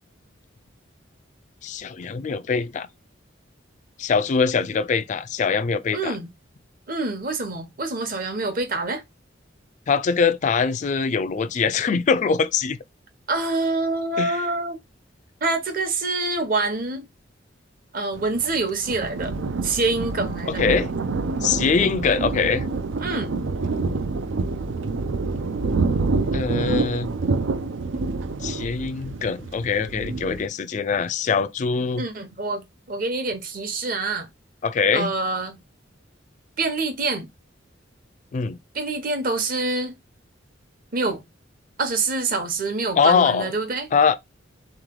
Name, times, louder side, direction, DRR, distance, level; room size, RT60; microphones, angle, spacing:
voice 1, 1.6-2.9 4.0-6.2 9.9-12.8 14.2-14.4 20.5-20.9 21.4-22.7 26.3-27.1 28.4-32.1 34.6-35.1 38.3-38.6 43.0-43.5 43.9-44.2, left 5 dB, 40° left, 0.3 m, -22 dB
voice 2, 5.9-6.3 6.9-9.0 13.3-14.8 15.4-17.1 17.9-19.3 19.6-20.6 23.0-23.3 32.0-34.3 34.9-35.6 36.6-37.3 38.7-39.9 40.9-41.2 41.8-43.9, right 3 dB, 50° right, 1.0 m, -26 dB
Thunder, 18.1-30.5, right 3 dB, 80° right, 0.5 m, -27 dB
3.8 x 3.2 x 3.7 m
head